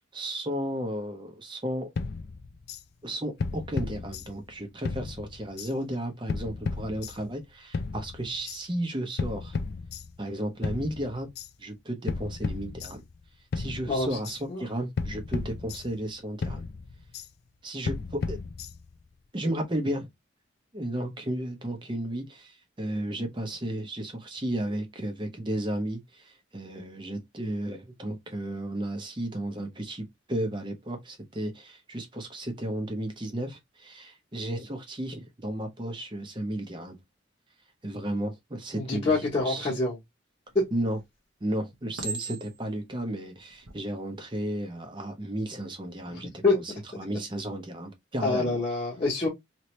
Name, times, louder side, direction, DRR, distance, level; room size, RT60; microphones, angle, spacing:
voice 1, 0.1-1.9 3.0-9.6 10.2-11.3 11.6-13.0 13.5-16.6 17.6-18.4 19.3-20.1 20.7-37.0 37.8-39.1 39.5-39.8 40.7-41.0 41.4-46.3 47.0-48.6, right 1 dB, 25° right, 0.7 m, -33 dB
sound 1, 2.0-2.8 3.4-4.6 4.8-5.7 6.3-7.4 7.7-8.6 9.2-10.3 10.6-11.5 12.1-13.2 13.5-14.4 15.0-16.1 16.4-17.3 17.9-19.0, left 4 dB, 50° left, 0.3 m, -34 dB
voice 2, 13.9-14.2 14.5-14.6 38.7-40.0 40.5-40.6 46.1-46.6 48.2-49.3, left 3 dB, 30° left, 1.1 m, -26 dB
Chink clink, 40.5-41.0 42.0-42.8 43.5-43.8, right 5 dB, 65° right, 0.9 m, -37 dB
2.9 x 2.7 x 3.1 m
head